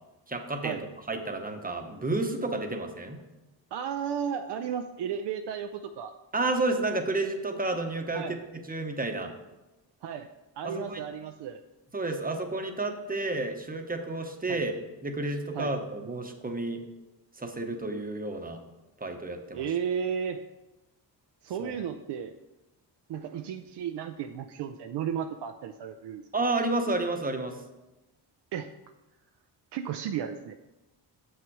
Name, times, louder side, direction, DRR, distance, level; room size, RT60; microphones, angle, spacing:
voice 1, 0.3-0.8 1.1-3.2 6.3-8.3 8.7-9.3 10.6-11.0 11.9-14.7 15.0-16.8 17.4-18.6 19.0-19.6 21.6-21.7 26.3-27.6, right 2 dB, 20° right, 4 dB, 1.0 m, -31 dB
voice 2, 3.7-6.1 8.1-8.4 10.0-10.3 10.6-11.6 14.5-14.6 15.5-15.7 19.5-20.5 21.4-22.4 23.1-26.2 28.5-28.7 29.7-30.5, right 8 dB, 70° right, 7 dB, 0.6 m, -34 dB
7.3 x 6.3 x 4.7 m, 1.0 s
cardioid pair, 105°, 43 cm